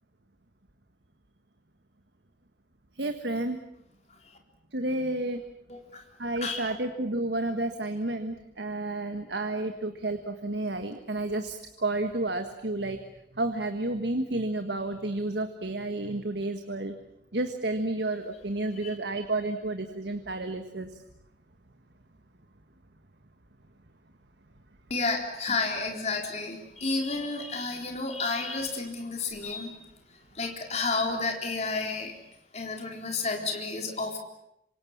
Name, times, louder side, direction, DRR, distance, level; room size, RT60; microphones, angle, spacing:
voice 1, 3.0-3.6 4.7-5.4 6.2-13.0 13.3-16.9 17.3-20.9 29.4-29.6, right 2 dB, 75° right, 7 dB, 1.6 m, -31 dB
voice 2, 5.7-6.0 6.4-6.7 24.9-29.7 30.4-32.1 32.5-34.2, left 3 dB, 40° left, 2 dB, 4.1 m, -31 dB
27.0 x 25.5 x 7.4 m, 0.81 s
head